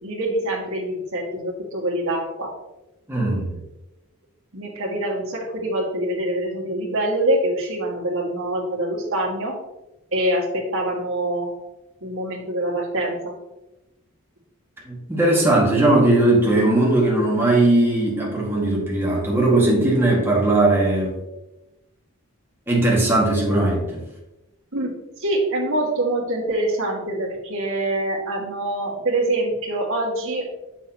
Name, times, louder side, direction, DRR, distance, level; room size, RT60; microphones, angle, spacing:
voice 1, 0.0-2.5 4.5-9.6 10.1-11.5 12.0-13.3 24.7-24.9 25.2-30.5, right 1 dB, 65° right, -2 dB, 1.8 m, -25 dB
voice 2, 3.1-3.6 14.8-21.2 22.7-24.0, right 2 dB, 10° right, -4 dB, 1.8 m, -19 dB
7.0 x 6.0 x 2.9 m, 0.98 s
head